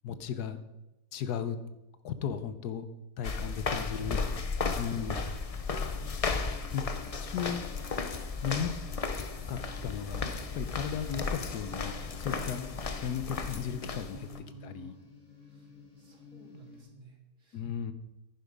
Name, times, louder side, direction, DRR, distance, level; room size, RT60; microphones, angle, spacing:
voice 1, 0.0-0.6 1.1-1.6 2.0-2.9 3.2-4.5 4.7-5.2 6.7-6.8 7.2-7.7 8.4-8.7 9.5-12.7 13.0-14.3 14.6-14.9 17.5-17.9, left 8 dB, 85° left, 11 dB, 1.4 m, -35 dB
sound 1, 3.2-14.4, left 4 dB, 40° left, 0.5 m, -35 dB
voice 2, 3.3-4.2 7.3-7.5 14.1-15.0 15.5-15.7 16.0-17.6, right 2 dB, 55° right, 1 dB, 2.5 m, -54 dB
sound 2, 5.8-16.8, left 4 dB, 65° left, 3.7 m, -53 dB
10.5 x 10.5 x 5.3 m, 0.96 s
omnidirectional pair, 1.6 m